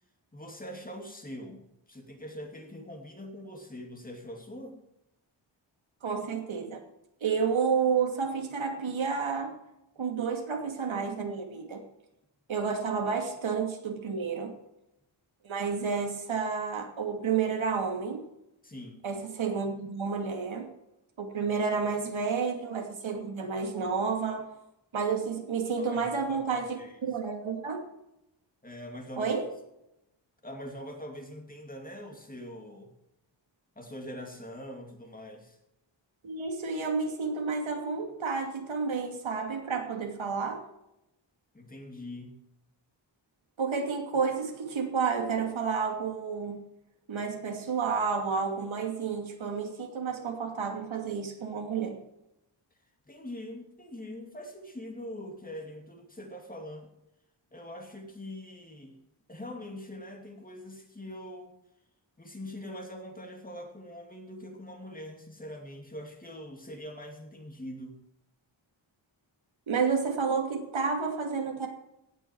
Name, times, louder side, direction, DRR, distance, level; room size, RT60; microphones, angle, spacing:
voice 1, 0.3-4.8 18.6-19.0 25.8-27.0 28.6-29.4 30.4-32.9 33.8-35.6 41.5-42.4 53.1-56.9 57.5-59.0 59.3-61.6 62.2-68.0, left 1 dB, 20° left, 2 dB, 2.5 m, -43 dB
voice 2, 6.0-6.8 7.2-9.6 10.0-11.8 12.5-14.5 15.4-18.2 19.0-20.7 21.2-24.5 24.9-27.8 29.2-29.4 36.2-40.6 43.6-46.7 47.1-52.0 69.7-71.7, right 5 dB, 90° right, 3 dB, 2.7 m, -30 dB
17.0 x 8.6 x 4.8 m, 0.86 s
wide cardioid pair, 160°, 46 cm